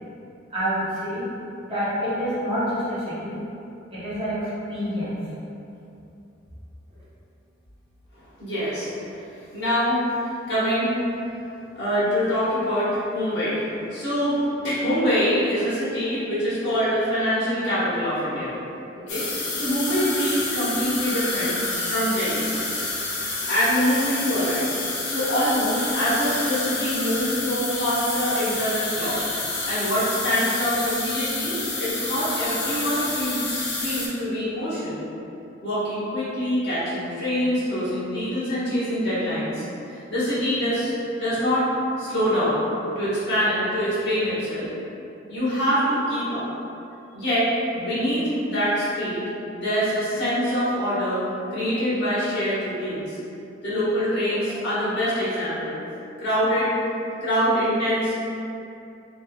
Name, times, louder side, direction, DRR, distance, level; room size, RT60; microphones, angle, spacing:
voice 1, 0.5-1.2 1.7-3.3 3.9-4.4 4.7-5.1, equal, 30° right, -13 dB, 1.1 m, -27 dB
voice 2, 8.1-8.9 9.5-10.0 10.5-10.9 11.7-13.6 13.9-18.5 18.9-19.3 19.5-21.6 21.9-22.5 23.5-24.7 25.0-29.2 29.7-35.0 35.6-39.6 39.9-40.9 41.2-41.7 42.0-42.6 42.9-44.7 45.3-46.5 47.1-49.2 49.6-51.2 51.5-53.2 53.6-55.8 56.2-56.7 57.2-58.2, equal, 60° left, -11 dB, 1.4 m, -24 dB
sound 1, 19.1-34.1, left 2 dB, 75° left, 0.7 m, -29 dB
3.5 x 3.0 x 2.3 m, 2.7 s
head